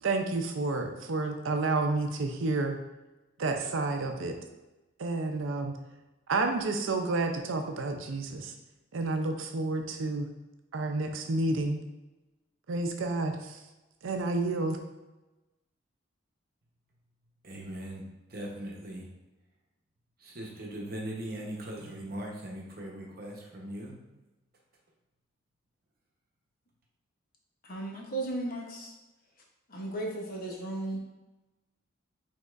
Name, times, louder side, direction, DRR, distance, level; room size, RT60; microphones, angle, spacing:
voice 1, 0.0-2.8 3.4-4.4 5.0-5.7 6.3-8.5 8.9-10.3 10.7-11.8 12.7-13.6 14.0-14.8, right 3 dB, 80° right, 5 dB, 0.5 m, -30 dB
voice 2, 17.4-18.0 18.3-19.1 20.2-23.9, right 1 dB, 50° right, -1 dB, 0.9 m, -39 dB
voice 3, 27.6-28.9 29.7-31.0, right 2 dB, 45° left, 0 dB, 0.8 m, -35 dB
5.1 x 3.6 x 2.4 m, 1.1 s
head